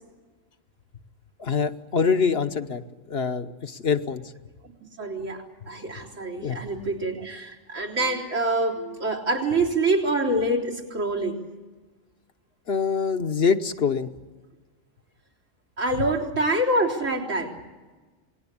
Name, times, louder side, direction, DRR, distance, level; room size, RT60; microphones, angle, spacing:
voice 1, 1.4-2.8 3.1-4.3 6.4-6.6 8.0-8.2 12.7-14.1 16.0-16.1, left 6 dB, 55° left, 8 dB, 1.2 m, -25 dB
voice 2, 5.0-11.3 15.8-17.5, right 2 dB, 85° right, -2 dB, 4.3 m, -26 dB
28.0 x 19.5 x 8.6 m, 1.3 s
omnidirectional pair, 1.3 m